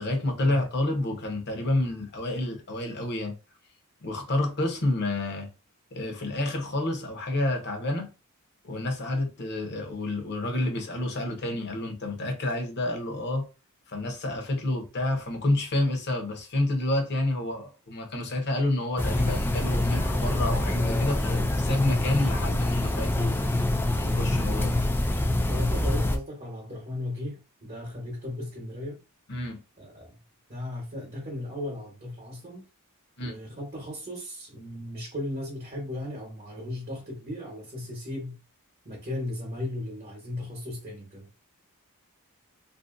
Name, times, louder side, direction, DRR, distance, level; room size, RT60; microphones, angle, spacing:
voice 1, 0.0-3.3 4.0-5.5 5.9-8.1 8.6-13.5 13.9-23.4 24.0-24.7 29.3-29.6 33.2-33.4, left 2 dB, 50° left, 0.8 m, -29 dB
sound 1, 19.0-26.2, left 1 dB, 10° left, 0.3 m, -25 dB
voice 2, 24.5-24.8 25.5-29.0 29.8-30.1 30.5-32.6 33.2-38.4 38.8-41.3, left 1 dB, 35° right, 1.0 m, -36 dB
2.7 x 2.6 x 2.5 m
head